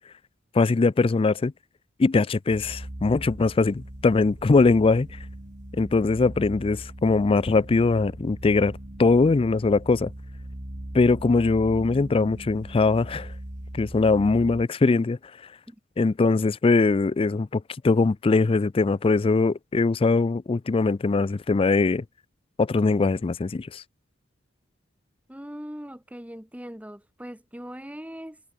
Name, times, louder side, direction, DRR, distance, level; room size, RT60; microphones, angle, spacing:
voice 1, 0.5-1.5 2.0-5.1 5.8-8.7 9.0-10.1 10.9-13.3 13.7-15.2 16.0-22.0 22.6-23.8, left 3 dB, 30° left, 0.4 m, -21 dB
sound 1, 2.5-14.7, right 1 dB, 40° right, 2.1 m, -40 dB
voice 2, 25.3-28.4, equal, 5° right, 2.0 m, -40 dB
head